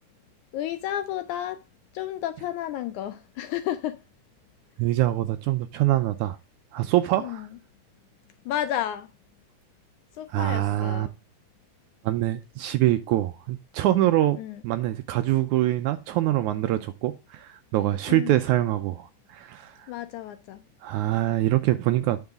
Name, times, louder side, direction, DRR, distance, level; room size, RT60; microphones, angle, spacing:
voice 1, 0.5-1.6 1.9-4.0 7.2-7.5 8.4-9.1 10.2-11.1 14.4-14.6 18.1-18.4 19.9-20.6, left 12 dB, 80° left, 1.7 m, -31 dB
voice 2, 4.8-6.4 6.7-7.5 10.3-11.1 12.0-14.4 14.6-19.7 20.8-22.2, right 14 dB, 80° right, 1.8 m, -24 dB
9.3 x 5.8 x 3.5 m
omnidirectional pair, 3.8 m